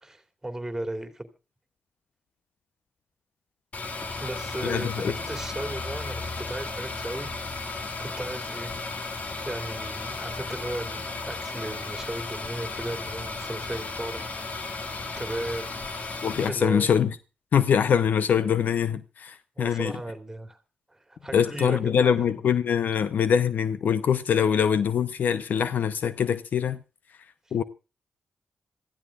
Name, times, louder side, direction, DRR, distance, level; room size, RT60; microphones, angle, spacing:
voice 1, 0.0-1.3 4.2-7.3 8.0-8.7 9.4-14.3 15.1-15.7 16.5-17.0 19.5-20.6 20.9-22.4, right 1 dB, 15° right, 2.9 m, -36 dB
sound 1, 3.7-16.5, left 3 dB, 55° left, 2.0 m, -34 dB
voice 2, 4.6-5.1 16.2-17.2 17.5-19.9 21.3-26.8 27.5-27.6, left 8 dB, 70° left, 0.7 m, -23 dB
26.0 x 14.5 x 2.4 m
cardioid pair, 60°, 3 cm